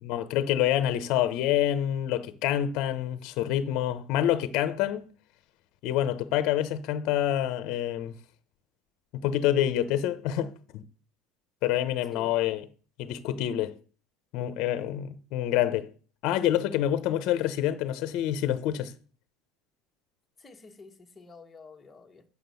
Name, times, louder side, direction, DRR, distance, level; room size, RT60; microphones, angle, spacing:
voice 1, 0.0-5.1 5.8-8.1 9.1-10.8 11.6-12.7 13.0-13.7 14.3-15.9 16.2-18.9, left 11 dB, 55° left, 0.9 m, -27 dB
voice 2, 20.4-22.2, left 4 dB, 15° left, 1.3 m, -50 dB
7.2 x 6.0 x 7.0 m
cardioid pair, 150°, 0 cm